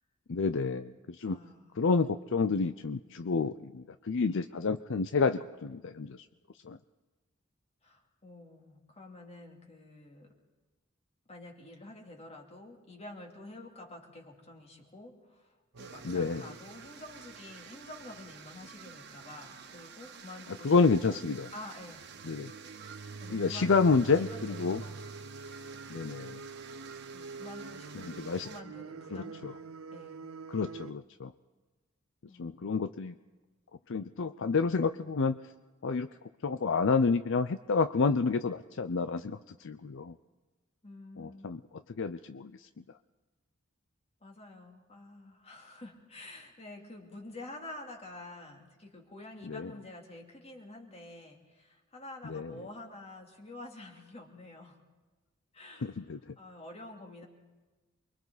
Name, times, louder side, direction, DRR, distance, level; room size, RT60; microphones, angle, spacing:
voice 1, 0.3-1.4 1.8-6.2 6.6-6.8 16.0-16.4 20.6-21.5 22.2-22.5 23.3-24.8 25.9-26.4 28.0-28.5 29.1-29.5 30.5-31.3 32.4-33.1 33.9-35.4 35.8-36.1 36.4-40.1 41.2-41.6 41.9-42.7 49.5-49.7 52.2-52.5 55.8-56.3, left 4 dB, 65° left, 11 dB, 0.6 m, -29 dB
voice 2, 1.2-1.9 7.8-10.3 11.3-21.2 21.5-22.1 23.2-23.8 24.3-25.0 27.1-29.4 29.9-30.2 32.3-33.0 40.8-41.6 44.2-54.8 55.5-56.0 56.4-57.3, left 2 dB, 30° left, 1 dB, 3.1 m, -49 dB
sound 1, 15.7-18.7 21.9-30.9, right 4 dB, 85° right, 0.7 m, -46 dB
sound 2, 15.8-28.6, right 6 dB, 55° right, 1.6 m, -50 dB
28.0 x 23.0 x 4.1 m, 1.2 s
head